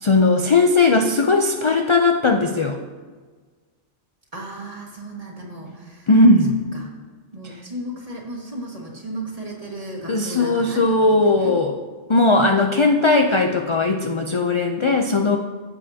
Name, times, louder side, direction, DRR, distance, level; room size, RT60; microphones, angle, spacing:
voice 1, 0.0-2.8 6.1-6.6 10.1-11.7 12.1-15.4, left 2 dB, 45° left, 4 dB, 0.4 m, -18 dB
voice 2, 4.3-6.1 6.7-6.9 7.3-10.8 11.1-11.5 12.2-12.7, right 1 dB, 30° right, -2 dB, 1.8 m, -34 dB
16.0 x 7.5 x 2.8 m, 1.4 s
omnidirectional pair, 1.2 m